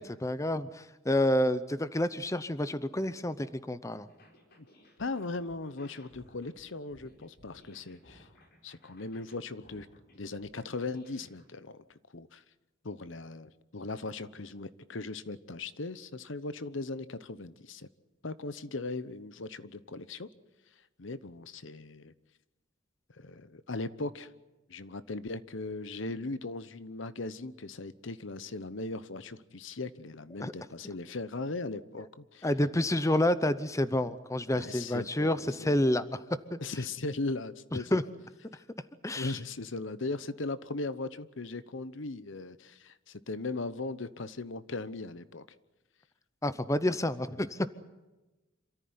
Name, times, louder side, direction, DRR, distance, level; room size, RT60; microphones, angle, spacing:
voice 1, 0.0-4.1 30.4-30.5 32.4-36.2 36.5-36.6 37.9-38.0 39.0-39.4 46.4-47.7, left 1 dB, 15° left, 13 dB, 0.7 m, -29 dB
sound 1, 4.1-11.5, left 1 dB, 50° left, 4.7 m, -59 dB
voice 2, 5.0-8.3 8.6-9.9 10.1-12.4 12.8-17.9 18.2-20.3 21.0-22.1 23.1-24.3 24.7-32.5 34.5-35.8 36.6-37.9 38.5-38.6 39.2-45.4, left 3 dB, 70° left, 15 dB, 1.0 m, -38 dB
27.5 x 14.0 x 9.6 m, 1.1 s
head